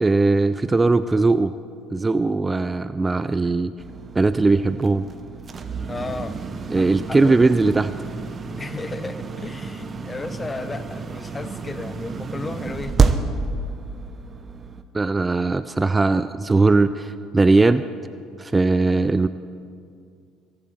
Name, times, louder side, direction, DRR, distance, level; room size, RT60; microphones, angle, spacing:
voice 1, 0.0-1.5 1.9-3.7 4.2-5.0 6.7-7.9 14.9-17.8 18.4-19.3, right 3 dB, 20° right, 13 dB, 0.4 m, -19 dB
sound 1, 3.8-14.8, right 4 dB, 35° right, 0.9 m, -29 dB
voice 2, 5.9-6.4 6.8-7.5 8.6-13.2, left 3 dB, 20° left, 13 dB, 0.8 m, -34 dB
22.5 x 8.4 x 4.7 m, 2.3 s
hypercardioid pair, 70°, 0 cm